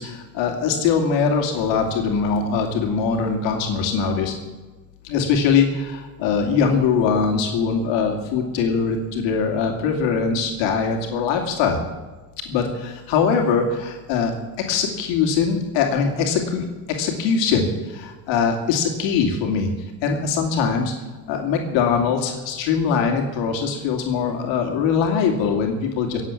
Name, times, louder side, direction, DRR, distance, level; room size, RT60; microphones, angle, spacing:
voice 1, 0.0-4.3 5.0-11.8 12.5-14.3 14.7-19.7 20.0-20.9 21.3-26.2, left 6 dB, 75° left, 2 dB, 2.8 m, -22 dB
19.5 x 8.2 x 7.3 m, 1.2 s
cardioid pair, 125°, 44 cm